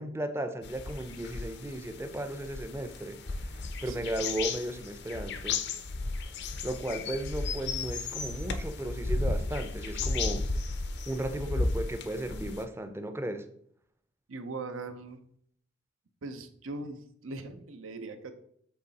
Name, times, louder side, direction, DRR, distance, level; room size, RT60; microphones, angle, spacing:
voice 1, 0.0-5.7 6.6-10.5 11.1-13.5, right 1 dB, 15° right, 7 dB, 0.5 m, -35 dB
sound 1, 0.6-12.6, left 3 dB, 60° left, 0.6 m, -34 dB
voice 2, 14.3-15.2 16.2-18.3, right 3 dB, 85° right, 8 dB, 0.8 m, -40 dB
7.9 x 3.2 x 4.1 m, 0.66 s
head